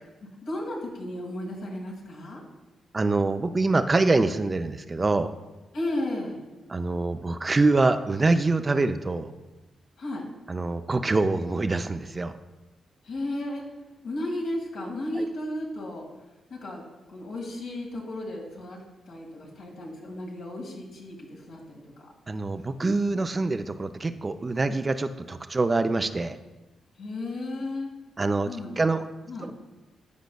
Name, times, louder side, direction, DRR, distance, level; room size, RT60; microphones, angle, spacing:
voice 1, 0.4-2.4 5.7-6.4 10.0-10.2 13.1-13.6 14.0-16.0 16.5-16.8 17.1-18.8 19.1-21.8 27.0-27.9 28.4-28.9 29.3-29.5, left 1 dB, 80° left, -3 dB, 1.9 m, -34 dB
voice 2, 2.9-5.3 6.7-9.3 10.5-12.3 15.2-15.3 22.3-26.4 28.2-28.5 28.8-29.0 29.4-29.5, right 3 dB, 35° right, 10 dB, 0.4 m, -25 dB
13.5 x 5.1 x 2.3 m, 1.1 s
supercardioid pair, 55°, 0 cm